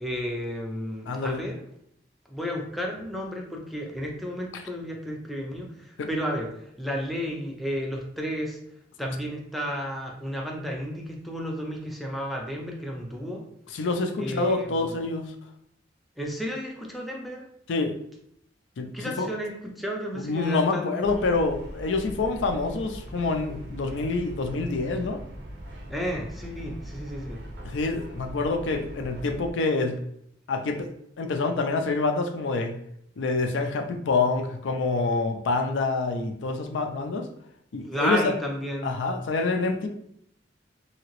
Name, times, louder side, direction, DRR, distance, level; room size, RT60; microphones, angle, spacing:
voice 1, 0.0-1.5 2.3-8.6 9.0-13.4 14.2-15.0 16.2-17.4 18.9-21.1 25.9-27.4 37.8-39.0, equal, ahead, 0 dB, 0.4 m, -32 dB
voice 2, 1.1-1.4 6.0-6.1 13.7-15.3 17.7-18.0 18.8-19.3 20.2-25.2 27.6-30.0 30.5-30.9 31.2-32.8 33.2-37.3 37.7-38.3 38.8-39.9, left 3 dB, 85° left, 5 dB, 0.4 m, -27 dB
sound 1, 21.0-29.5, right 1 dB, 65° right, 0.6 m, -41 dB
2.9 x 2.8 x 2.9 m, 0.72 s
head